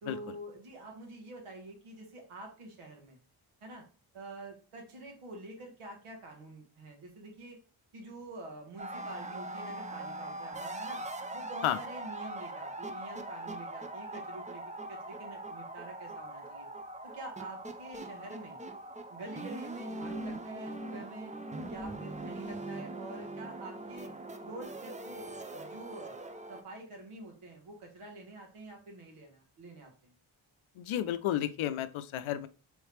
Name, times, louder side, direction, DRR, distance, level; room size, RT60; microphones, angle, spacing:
voice 1, 0.0-3.2 3.6-3.8 4.1-7.6 7.9-11.0 11.3-16.7 17.0-18.6 19.1-21.3 21.6-24.1 24.4-26.2 26.5-30.1, right 2 dB, 85° right, 1 dB, 1.5 m, -47 dB
sound 1, 8.8-26.6, right 1 dB, 15° right, 0.5 m, -41 dB
voice 2, 30.8-32.5, left 11 dB, 75° left, 12 dB, 0.5 m, -32 dB
3.5 x 3.2 x 3.2 m, 0.36 s
cardioid pair, 55°, 49 cm